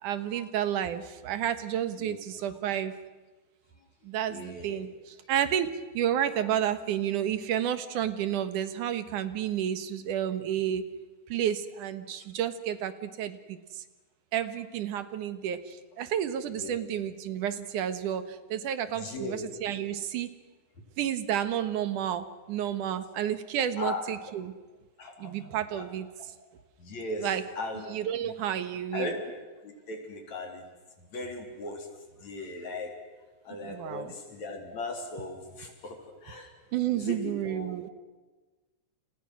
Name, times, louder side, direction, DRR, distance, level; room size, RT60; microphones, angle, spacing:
voice 1, 0.0-3.0 4.0-10.8 11.3-13.8 14.3-20.3 21.0-24.5 25.2-26.1 27.2-27.4 27.9-29.2 33.6-34.1 36.7-37.9, right 10 dB, 85° right, 11 dB, 2.9 m, -31 dB
voice 2, 4.3-4.8 16.5-16.8 19.0-19.5 23.8-24.1 25.0-25.3 25.7-25.8 26.8-27.3 27.6-27.9 28.2-28.3 28.9-30.7 31.1-31.9 32.2-32.9 33.4-36.5 36.9-37.9, left 2 dB, 65° left, 3 dB, 5.0 m, -38 dB
30.0 x 29.5 x 6.3 m, 1.2 s
omnidirectional pair, 3.5 m